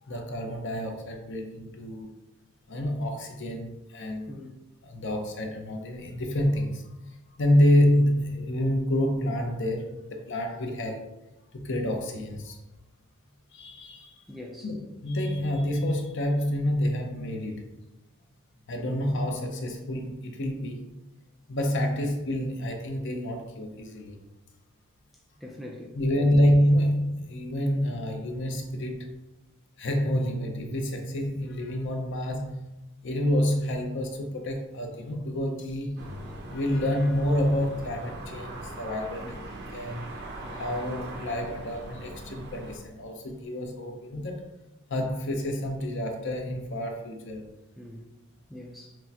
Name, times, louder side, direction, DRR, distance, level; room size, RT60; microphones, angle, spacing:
voice 1, 0.0-2.1 2.7-4.3 4.8-6.8 7.4-11.1 11.5-12.6 13.5-14.3 14.6-17.7 18.7-20.9 21.5-24.2 25.9-29.1 29.8-32.6 33.0-36.1 36.4-39.3 39.7-40.1 40.6-44.4 44.9-47.5, left 1 dB, 55° left, 0.6 m, -28 dB
voice 2, 14.3-14.7 22.0-22.1 25.4-26.3 39.2-39.4 47.8-48.0 48.5-49.0, left 1 dB, ahead, 0.3 m, -42 dB
sound 1, 36.0-42.8, right 1 dB, 45° right, 0.6 m, -40 dB
6.0 x 2.1 x 2.8 m
head